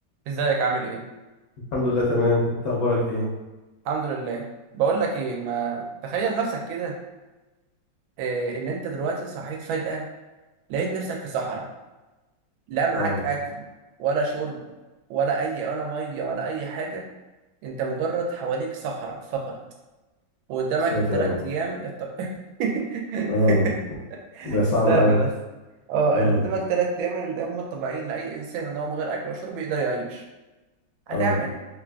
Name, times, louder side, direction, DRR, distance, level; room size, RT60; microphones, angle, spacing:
voice 1, 0.3-1.0 3.8-4.4 4.7-6.9 8.2-10.0 10.7-11.7 12.7-13.6 14.0-14.6 15.1-17.0 17.6-19.5 20.5-22.3 22.6-23.7 24.3-25.3 25.9-30.2 31.2-31.6, right 4 dB, 90° right, 0 dB, 1.4 m, -27 dB
voice 2, 1.7-3.2 13.0-13.2 20.9-21.3 23.3-23.6 24.4-25.2 26.1-26.4 31.1-31.4, left 1 dB, 65° left, -5 dB, 1.0 m, -22 dB
3.5 x 2.4 x 2.3 m, 1.1 s
omnidirectional pair, 2.1 m